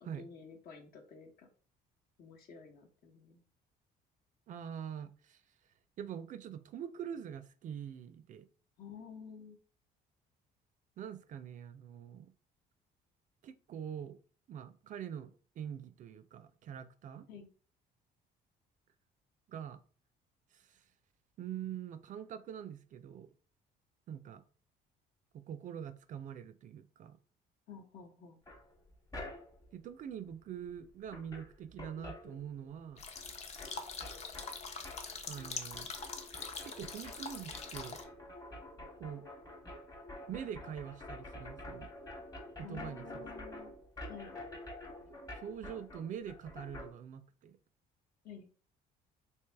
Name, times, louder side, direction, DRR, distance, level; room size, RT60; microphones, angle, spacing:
voice 1, 0.0-1.5 2.2-3.4 8.8-9.6 17.3-17.5 27.7-28.4 42.6-43.7 44.1-44.3 48.2-48.5, left 6 dB, 60° left, 0.9 m, -51 dB
voice 2, 4.5-5.4 6.0-8.5 11.0-12.3 13.4-14.2 14.5-17.3 19.5-19.8 20.5-20.8 21.4-23.3 24.1-24.4 25.3-27.2 29.7-33.0 35.3-35.9 36.6-38.0 39.0-39.3 40.3-41.9 42.6-43.3 45.3-47.6, right 9 dB, 50° right, 0.4 m, -44 dB
sound 1, 28.5-29.7 30.7-30.8 31.1-32.9 33.2-46.9, left 1 dB, 20° left, 1.0 m, -48 dB
sound 2, 33.0-38.0, left 4 dB, 40° left, 0.6 m, -43 dB
3.3 x 2.7 x 3.3 m
cardioid pair, 110°, 17 cm